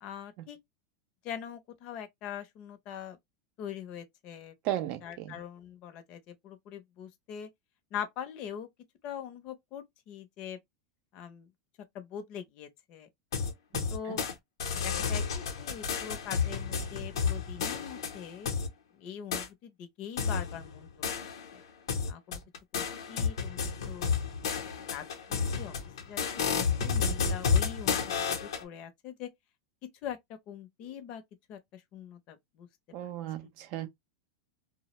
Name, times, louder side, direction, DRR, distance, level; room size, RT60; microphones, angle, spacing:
voice 1, 0.0-0.6 1.2-3.2 3.6-4.5 5.0-7.5 7.9-8.7 9.0-10.6 11.1-11.5 11.9-13.1 13.9-14.2 14.7-18.5 19.0-21.6 22.1-22.4 22.7-23.6 23.8-24.6 24.9-25.0 25.3-25.7 26.0-28.1 28.4-29.3 30.0-30.2 30.5-31.2 31.5-32.7 33.4-33.5, left 9 dB, 45° left, 0.6 m, -42 dB
voice 2, 4.6-5.4 13.7-14.2 32.9-33.9, right 13 dB, 50° right, 0.5 m, -36 dB
sound 1, 13.3-14.3 14.6-18.7 19.3-19.5 20.2-21.6 21.9-28.6, left 6 dB, 85° left, 0.7 m, -31 dB
2.1 x 2.0 x 2.9 m
supercardioid pair, 135°, 2 cm